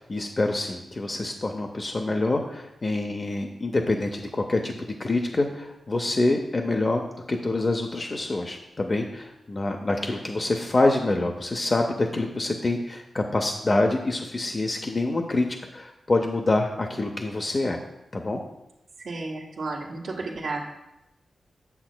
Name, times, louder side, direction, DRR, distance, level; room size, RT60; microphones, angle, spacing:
voice 1, 0.0-7.0 7.3-15.5 15.7-17.8 18.1-18.4, left 2 dB, 35° left, 3 dB, 0.5 m, -26 dB
voice 2, 19.0-20.7, right 3 dB, 80° right, -2 dB, 1.3 m, -32 dB
7.8 x 7.2 x 2.2 m, 0.91 s
wide cardioid pair, 95°, 0 cm